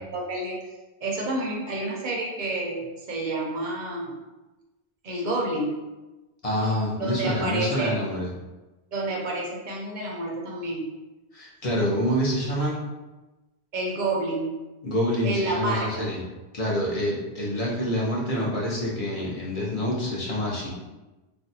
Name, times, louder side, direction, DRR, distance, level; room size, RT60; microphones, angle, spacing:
voice 1, 0.1-0.6 1.0-4.1 5.0-5.8 7.0-7.9 8.9-10.9 13.7-14.6 15.2-16.1, right 2 dB, 50° right, -2 dB, 0.7 m, -29 dB
voice 2, 6.4-8.3 11.3-12.8 14.8-16.2 16.5-20.7, equal, 40° left, -5 dB, 0.6 m, -27 dB
2.6 x 2.2 x 3.9 m, 1.1 s
omnidirectional pair, 1.1 m